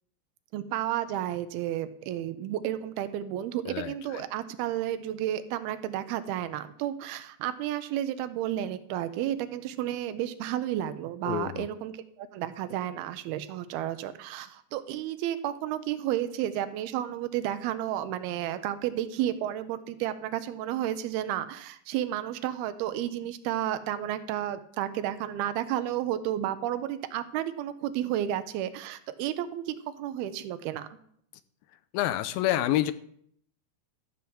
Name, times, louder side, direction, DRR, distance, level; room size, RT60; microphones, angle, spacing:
voice 1, 0.5-30.9, right 12 dB, 85° right, 10 dB, 2.7 m, -32 dB
voice 2, 3.7-4.2 11.3-11.7 31.9-32.9, left 13 dB, 80° left, 14 dB, 2.3 m, -28 dB
13.5 x 5.7 x 7.7 m, 0.66 s
omnidirectional pair, 4.3 m